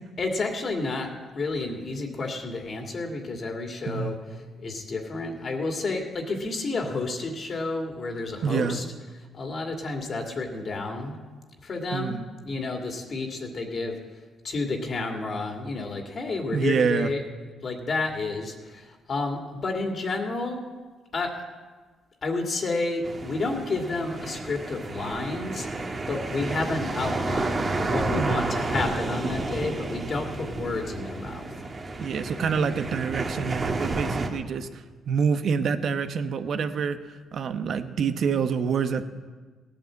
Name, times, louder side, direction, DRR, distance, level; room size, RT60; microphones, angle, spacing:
voice 1, 0.2-8.9 9.3-11.2 11.6-13.9 14.4-17.2 17.6-20.6 21.1-21.4 22.2-31.5, left 3 dB, 45° left, 2 dB, 2.4 m, -30 dB
voice 2, 3.9-4.2 8.4-8.8 11.9-12.3 16.5-17.1 28.2-28.6 32.0-37.0 37.3-39.1, right 6 dB, 60° right, 9 dB, 1.0 m, -27 dB
sound 1, 23.0-34.3, right 2 dB, 30° right, 1.7 m, -31 dB
17.0 x 8.9 x 7.6 m, 1.4 s
cardioid pair, 90°, 0 cm